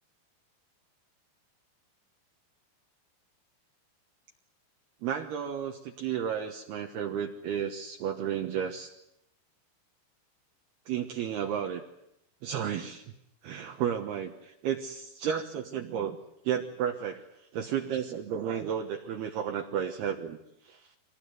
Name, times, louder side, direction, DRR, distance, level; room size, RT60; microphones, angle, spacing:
voice 1, 5.0-8.9 10.9-11.8 12.4-13.1 13.4-16.2 16.4-17.2 17.5-20.4 20.6-20.9, right 8 dB, 70° right, 3 dB, 2.9 m, -32 dB
25.0 x 19.0 x 9.4 m, 0.80 s
omnidirectional pair, 5.5 m